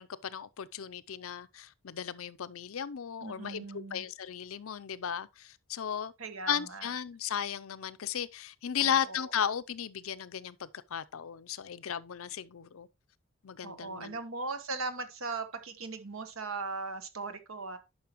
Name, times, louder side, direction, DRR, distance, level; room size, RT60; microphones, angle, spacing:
voice 1, 0.0-6.1 6.5-12.9 13.4-14.2, left 8 dB, 85° left, 0.5 m, -35 dB
voice 2, 3.2-4.1 6.2-6.9 8.8-9.3 13.6-17.8, right 3 dB, 75° right, 1.2 m, -39 dB
10.5 x 5.7 x 3.0 m
head